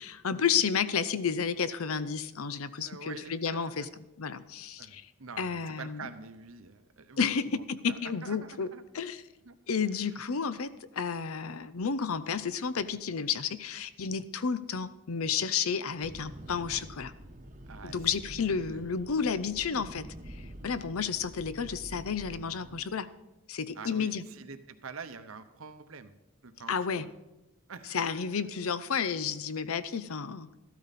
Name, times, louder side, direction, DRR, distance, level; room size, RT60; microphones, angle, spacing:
voice 1, 0.0-3.9 4.2-5.0 5.4-6.1 7.2-8.7 8.9-9.2 9.7-17.1 17.8-20.1 20.6-23.1 23.5-24.2 26.7-27.1 27.9-30.5, left 6 dB, 75° left, 14 dB, 0.6 m, -31 dB
voice 2, 2.8-3.9 4.8-8.8 9.4-9.6 17.7-18.0 20.7-20.9 23.7-26.1 26.4-27.1 27.7-28.3, right 5 dB, 70° right, 10 dB, 0.9 m, -46 dB
sound 1, 16.0-22.8, right 1 dB, 35° right, 1.0 m, -47 dB
13.5 x 12.5 x 4.2 m, 0.97 s
head